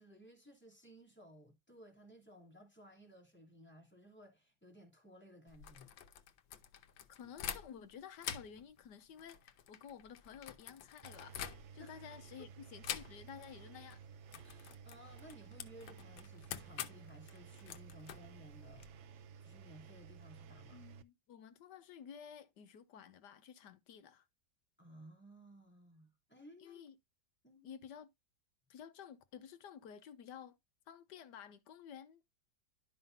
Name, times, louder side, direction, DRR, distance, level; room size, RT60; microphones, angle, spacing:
voice 1, 0.0-5.9 11.8-12.0 14.4-18.9 19.4-20.8 24.8-26.8 27.4-27.7, equal, 5° left, 2.8 m, -58 dB
sound 1, 5.5-7.9 8.2-12.0 12.8-13.5 13.8-14.0 14.3-18.9, left 9 dB, 85° left, 1.6 m, -47 dB
voice 2, 7.2-11.4 11.7-14.0 20.7-24.3 26.6-26.9 27.6-28.1 28.7-30.6 30.9-32.2, left 8 dB, 70° left, 1.3 m, -53 dB
Engine, 11.0-21.0, right 7 dB, 80° right, 0.6 m, -55 dB
12.0 x 5.5 x 2.6 m
omnidirectional pair, 2.0 m